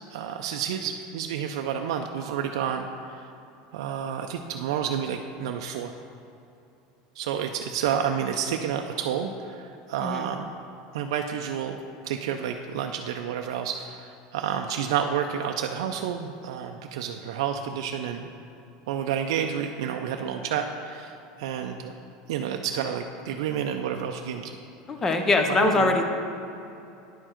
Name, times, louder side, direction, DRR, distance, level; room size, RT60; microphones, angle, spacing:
voice 1, 0.1-3.3 3.7-5.9 7.2-10.5 10.9-11.8 12.0-18.3 18.9-21.9 22.3-24.6 25.5-26.0, right 8 dB, 80° right, 4 dB, 0.4 m, -30 dB
voice 2, 24.9-26.0, left 3 dB, 15° left, 5 dB, 0.5 m, -22 dB
9.8 x 4.6 x 4.4 m, 2.7 s
supercardioid pair, 170°, 3 cm